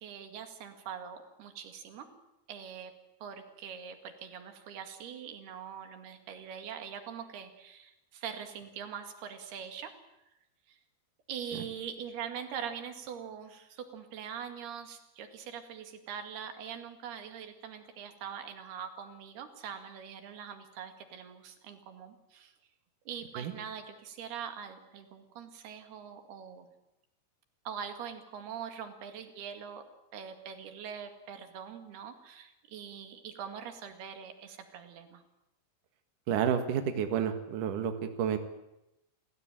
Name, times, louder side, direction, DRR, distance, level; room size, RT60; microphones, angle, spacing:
voice 1, 0.0-2.1 2.5-2.9 3.2-9.9 10.7-10.8 11.3-22.5 23.1-26.7 27.7-29.8 30.1-35.2, right 8 dB, 85° right, 7 dB, 4.1 m, -43 dB
voice 2, 36.3-38.4, right 8 dB, 60° right, 7 dB, 3.1 m, -30 dB
29.5 x 16.5 x 9.1 m, 0.88 s
omnidirectional pair, 4.4 m